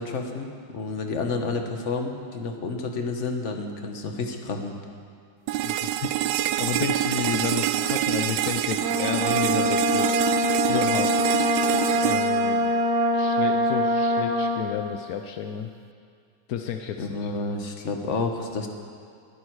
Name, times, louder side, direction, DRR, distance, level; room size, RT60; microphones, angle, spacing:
voice 1, 0.0-4.7 17.0-18.7, left 3 dB, 40° left, 4 dB, 1.3 m, -30 dB
sound 1, 5.5-13.5, right 12 dB, 75° right, 1.1 m, -26 dB
voice 2, 5.6-6.1 6.6-10.2 10.6-11.3 12.0-12.7 13.1-15.7 16.5-17.3, left 8 dB, 70° left, 5 dB, 0.8 m, -31 dB
Brass instrument, 8.8-14.6, equal, 45° right, 1.4 m, -23 dB
21.0 x 11.0 x 4.7 m, 2.3 s
omnidirectional pair, 2.2 m